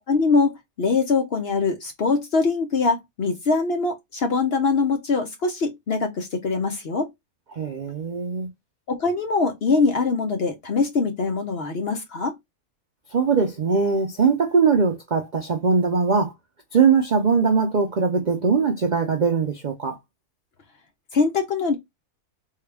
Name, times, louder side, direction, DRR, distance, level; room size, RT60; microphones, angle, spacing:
voice 1, 0.1-7.1 8.9-12.3 21.1-21.8, left 4 dB, 55° left, 0.8 m, -23 dB
voice 2, 7.5-8.5 13.1-16.3 16.7-20.0, right 5 dB, 55° right, 0.5 m, -21 dB
3.7 x 2.3 x 3.3 m
omnidirectional pair, 1.6 m